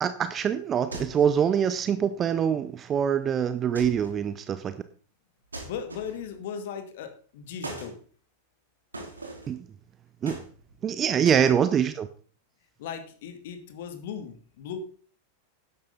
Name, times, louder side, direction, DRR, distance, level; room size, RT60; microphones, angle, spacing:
voice 1, 0.0-4.8 9.5-9.6 10.2-10.4 10.8-12.1, right 8 dB, 25° right, 12 dB, 0.7 m, -24 dB
sound 1, 0.9-1.4 3.7-4.2 5.5-6.3 7.6-8.0 8.9-9.6 10.2-10.9 11.2-11.5, right 2 dB, 80° right, 3.1 m, -40 dB
voice 2, 5.6-8.0 11.3-11.6 12.8-14.8, left 7 dB, 55° left, 8 dB, 2.2 m, -37 dB
12.5 x 10.5 x 4.0 m, 0.43 s
figure-of-eight pair, 90°, 0 cm